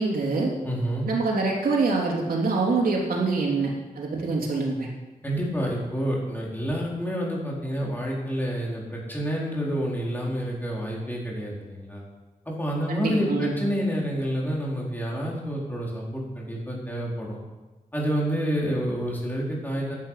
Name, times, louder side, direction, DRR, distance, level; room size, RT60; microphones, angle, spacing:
voice 1, 0.0-0.5 1.0-4.9 12.9-13.5, right 3 dB, 90° right, -2 dB, 3.4 m, -25 dB
voice 2, 0.6-1.1 5.2-12.0 12.5-17.4 17.9-20.0, equal, 10° left, -4 dB, 4.5 m, -28 dB
14.0 x 11.0 x 5.8 m, 1.2 s
wide cardioid pair, 100°, 15 cm